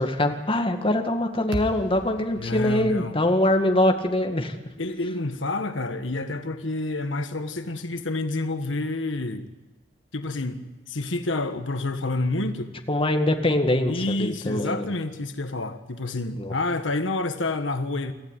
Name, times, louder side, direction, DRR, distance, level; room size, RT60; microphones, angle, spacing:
voice 1, 0.0-4.6 12.9-14.9 16.4-16.5, left 1 dB, 30° left, 2.0 m, -23 dB
sound 1, 1.5-5.8, equal, 70° right, 2.4 m, -40 dB
voice 2, 2.4-3.2 4.8-9.5 10.1-12.7 13.9-18.1, left 2 dB, 80° left, 1.4 m, -28 dB
25.0 x 15.0 x 9.1 m
head